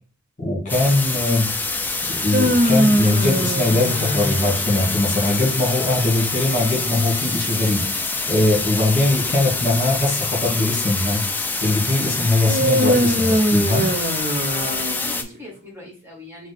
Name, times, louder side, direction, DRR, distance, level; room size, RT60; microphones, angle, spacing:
voice 1, 0.4-1.5 2.1-11.3 11.6-13.9, left 2 dB, 40° left, -1 dB, 1.6 m, -21 dB
sound 1, 0.7-15.2, left 3 dB, 10° left, 0.3 m, -26 dB
sound 2, 2.1-5.3 12.5-15.4, equal, 40° right, 0.6 m, -22 dB
voice 2, 14.5-16.5, left 2 dB, 10° right, -2 dB, 1.3 m, -39 dB
5.6 x 2.1 x 3.2 m, 0.40 s
head